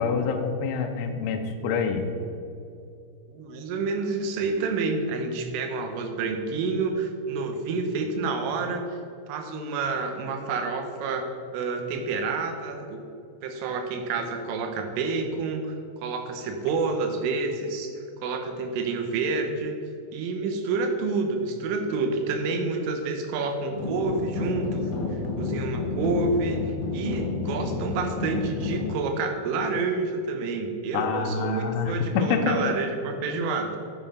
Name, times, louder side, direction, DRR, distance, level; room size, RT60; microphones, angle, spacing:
voice 1, 0.0-2.0 30.9-32.7, left 5 dB, 90° left, 3 dB, 2.3 m, -26 dB
voice 2, 3.3-9.0 9.3-11.3 11.5-13.0 13.4-15.8 16.0-19.8 20.1-24.9 25.4-26.6 26.9-33.8, right 4 dB, 80° right, 5 dB, 3.5 m, -28 dB
sound 1, 23.7-28.9, left 4 dB, 45° left, 2.3 m, -30 dB
8.4 x 7.4 x 5.7 m, 2.6 s
omnidirectional pair, 5.8 m